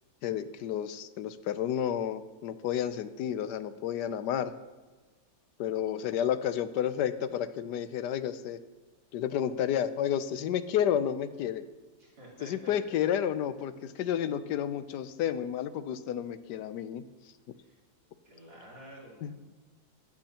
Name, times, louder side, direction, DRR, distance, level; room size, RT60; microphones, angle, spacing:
voice 1, 0.2-4.5 5.6-8.6 9.1-11.6 12.4-17.0 19.2-19.3, left 9 dB, 90° left, 12 dB, 1.3 m, -31 dB
voice 2, 12.0-12.7 17.6-17.8 18.2-19.4, right 1 dB, 80° right, -5 dB, 4.2 m, -50 dB
23.0 x 8.9 x 2.9 m, 1.3 s
omnidirectional pair, 1.7 m